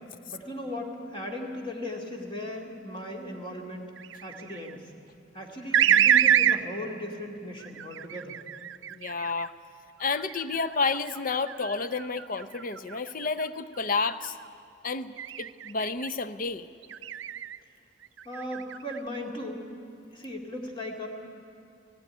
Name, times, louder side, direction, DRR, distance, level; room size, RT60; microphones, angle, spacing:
voice 1, 0.3-3.8 4.2-4.9 5.3-8.4 18.2-19.6 20.1-21.1, left 1 dB, 25° left, 0 dB, 2.3 m, -37 dB
sound 1, 4.0-4.7 5.7-6.6 7.6-9.5 10.2-13.5 13.9-14.3 15.2-16.1 16.8-17.6 18.0-19.0, right 9 dB, 85° right, 0.5 m, -27 dB
voice 2, 8.9-9.5 10.0-14.4 14.8-15.1 15.4-16.7, left 4 dB, 45° left, 12 dB, 0.7 m, -30 dB
17.5 x 17.0 x 9.8 m, 2.6 s
head